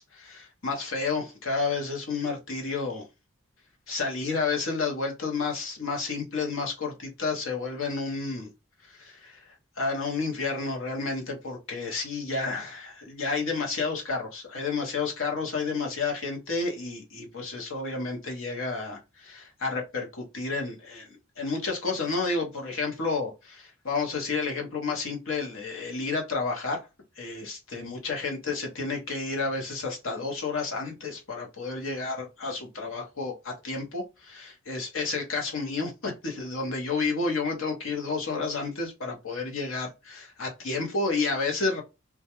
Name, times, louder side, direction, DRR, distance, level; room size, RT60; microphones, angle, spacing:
voice 1, 0.0-3.0 3.9-8.5 8.8-9.5 9.8-26.8 27.2-41.8, left 4 dB, 70° left, 0.8 m, -31 dB
2.3 x 2.1 x 2.8 m
head